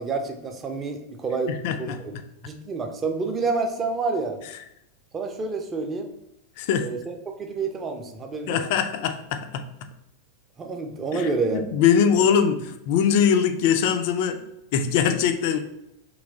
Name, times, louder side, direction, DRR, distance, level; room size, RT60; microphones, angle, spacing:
voice 1, 0.0-1.9 2.4-4.4 5.1-6.1 6.8-8.6 10.6-11.6, right 4 dB, 20° right, 5 dB, 0.5 m, -28 dB
voice 2, 1.5-2.2 6.6-6.9 8.5-9.6 11.1-14.4 14.7-15.6, left 7 dB, 50° left, 7 dB, 0.4 m, -22 dB
3.1 x 3.0 x 3.8 m, 0.84 s
figure-of-eight pair, 90°, 0 cm